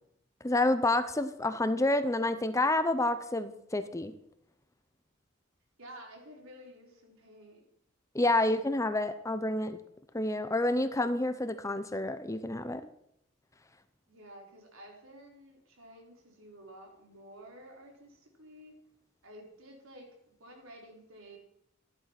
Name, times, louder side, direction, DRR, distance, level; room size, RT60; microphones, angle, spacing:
voice 1, 0.4-4.1 8.1-9.8 10.1-12.8, left 2 dB, 15° left, 10 dB, 0.7 m, -29 dB
voice 2, 5.8-7.6 8.3-8.4 14.1-18.8 19.2-21.4, right 1 dB, 80° right, 0 dB, 4.3 m, -52 dB
14.0 x 11.0 x 6.0 m, 0.74 s
head